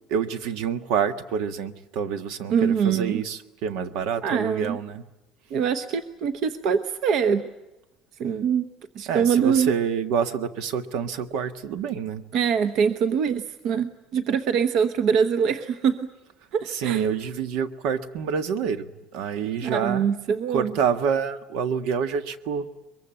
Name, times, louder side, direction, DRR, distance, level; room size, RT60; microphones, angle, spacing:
voice 1, 0.1-5.0 9.1-12.2 16.7-18.9 19.1-20.0 20.5-22.7, right 7 dB, 70° right, 11 dB, 1.6 m, -27 dB
voice 2, 2.5-3.2 4.2-4.8 5.5-7.4 8.2-8.7 8.9-9.7 12.3-16.0 16.5-17.0 19.6-20.7, right 7 dB, 50° right, 11 dB, 1.1 m, -23 dB
23.0 x 23.0 x 9.0 m, 0.99 s
cardioid pair, 180°, 0 cm